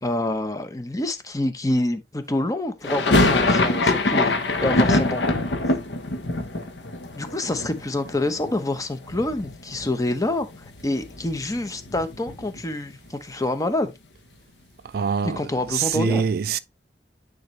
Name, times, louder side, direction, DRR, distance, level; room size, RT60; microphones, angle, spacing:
voice 1, 0.0-4.3 4.6-5.2 7.2-13.9 15.2-16.3, left 1 dB, 20° left, 0.8 m, -27 dB
sound 1, 2.8-8.8 9.0-9.9 10.2-10.3 10.5-12.7, left 2 dB, 90° left, 1.1 m, -23 dB
voice 2, 14.9-15.4 15.7-16.6, right 6 dB, 60° right, 0.4 m, -23 dB
9.5 x 4.0 x 3.2 m
head